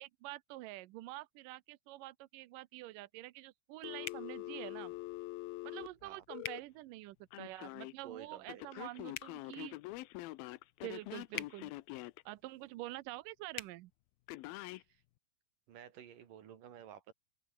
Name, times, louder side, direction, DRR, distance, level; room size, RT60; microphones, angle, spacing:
voice 1, 0.0-4.9 5.6-9.8 10.8-11.7 12.3-13.9, right 17 dB, 75° right, 2.1 m, -47 dB
Telephone, 3.8-6.6 7.3-7.9 8.5-12.2 14.3-14.8, left 18 dB, 80° left, 2.5 m, -45 dB
sound 1, 4.0-4.3 6.4-6.6 9.1-9.3 11.3-11.5 13.5-13.7, left 9 dB, 55° left, 1.6 m, -42 dB
voice 2, 8.0-8.6 9.0-9.2 14.6-15.0 15.7-17.1, right 9 dB, 60° right, 3.7 m, -53 dB
open air
omnidirectional pair, 4.4 m